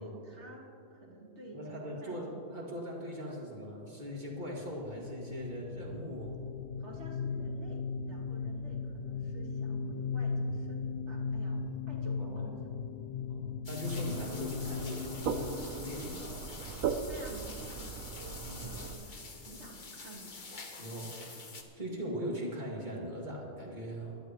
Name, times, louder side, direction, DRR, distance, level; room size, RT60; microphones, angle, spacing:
voice 1, 0.0-2.5 6.8-7.8 8.1-12.6 17.1-20.3, right 2 dB, 55° right, -3 dB, 2.3 m, -51 dB
voice 2, 1.5-6.4 12.2-12.5 13.3-15.6 15.8-16.4 18.2-18.7 20.8-21.2 21.8-24.2, equal, 35° right, -3 dB, 2.5 m, -40 dB
sound 1, 4.8-17.2, left 4 dB, 75° left, 1.0 m, -37 dB
sound 2, 13.7-21.6, left 4 dB, 40° left, 1.2 m, -47 dB
sound 3, 13.8-18.9, right 6 dB, 80° right, 1.1 m, -38 dB
20.0 x 12.5 x 3.1 m, 2.8 s
omnidirectional pair, 1.4 m